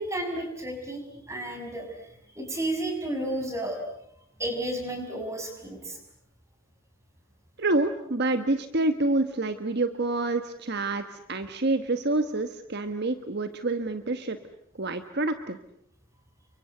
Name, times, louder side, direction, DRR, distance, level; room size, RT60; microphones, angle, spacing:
voice 1, 0.0-1.9 2.3-3.8 4.4-6.0, right 1 dB, 15° right, 4 dB, 6.4 m, -32 dB
voice 2, 7.6-11.0 11.3-14.4 14.8-15.6, right 2 dB, 55° right, 9 dB, 1.3 m, -27 dB
30.0 x 24.5 x 7.9 m, 0.73 s
head